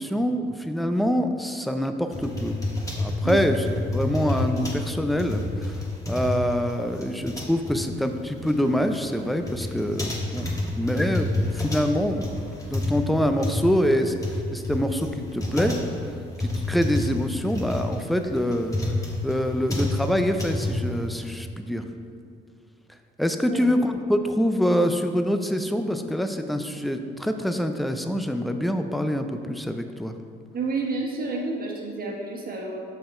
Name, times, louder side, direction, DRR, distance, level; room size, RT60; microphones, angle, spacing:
voice 1, 0.0-2.5 3.0-3.6 3.9-5.8 6.1-12.3 12.6-15.8 16.4-18.8 19.2-21.9 23.2-30.2, equal, ahead, 7 dB, 0.4 m, -25 dB
sound 1, 2.1-21.3, left 2 dB, 15° left, 1.4 m, -29 dB
voice 2, 30.5-32.8, right 3 dB, 50° right, -1 dB, 1.3 m, -30 dB
5.6 x 5.5 x 4.3 m, 2.3 s
cardioid pair, 90°, 20 cm